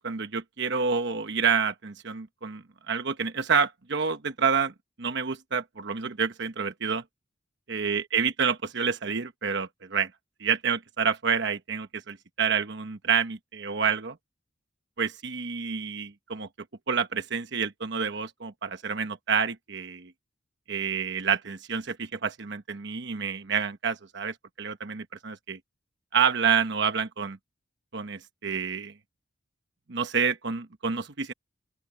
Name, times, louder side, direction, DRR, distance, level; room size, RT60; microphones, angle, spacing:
voice 1, 0.0-4.7 5.0-7.0 7.7-10.1 10.4-14.2 15.0-16.5 16.9-20.1 20.7-25.6 26.1-27.4 27.9-28.9 29.9-31.3, right 6 dB, 60° right, 1.0 m, -28 dB
open air
head